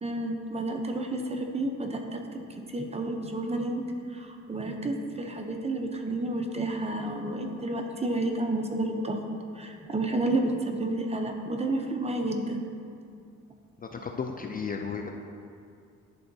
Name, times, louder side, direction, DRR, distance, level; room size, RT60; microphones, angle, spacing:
voice 1, 0.0-2.4 2.7-3.8 4.1-9.2 9.5-12.7, right 2 dB, 20° right, 3 dB, 0.6 m, -30 dB
voice 2, 13.8-15.1, left 5 dB, 30° left, 3 dB, 0.4 m, -34 dB
11.0 x 3.8 x 2.7 m, 2.4 s
cardioid pair, 90°, 30 cm